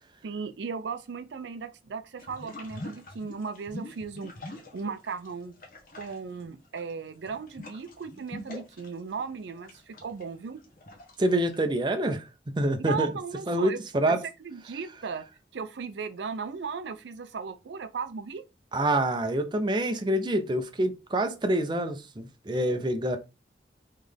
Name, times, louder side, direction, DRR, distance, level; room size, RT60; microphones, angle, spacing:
voice 1, 0.2-5.6 5.9-10.6 12.9-13.8 14.1-14.2 14.4-15.2 15.5-18.4, right 5 dB, 80° right, 0.5 m, -36 dB
sound 1, 2.2-5.3 5.6-11.6, left 1 dB, 50° left, 1.1 m, -44 dB
voice 2, 11.2-12.3 12.6-13.1 13.5-14.2 18.7-23.2, right 1 dB, 25° right, 0.5 m, -26 dB
3.7 x 3.2 x 3.4 m
head